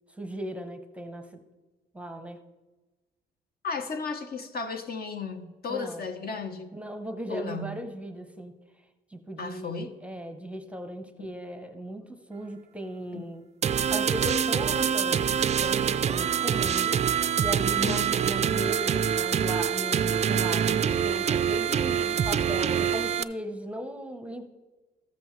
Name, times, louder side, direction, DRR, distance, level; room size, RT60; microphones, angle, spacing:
voice 1, 0.1-1.4 1.9-2.4 5.7-6.0 6.7-13.4 13.9-24.5, right 1 dB, 5° right, 7 dB, 0.8 m, -37 dB
voice 2, 3.6-6.7 7.3-7.9 9.4-9.9 13.1-13.2 17.8-18.1, left 4 dB, 50° left, 7 dB, 0.9 m, -34 dB
sound 1, 13.6-23.2, right 8 dB, 35° right, 0.3 m, -25 dB
13.5 x 7.8 x 3.1 m, 1.2 s
cardioid pair, 90°, 20 cm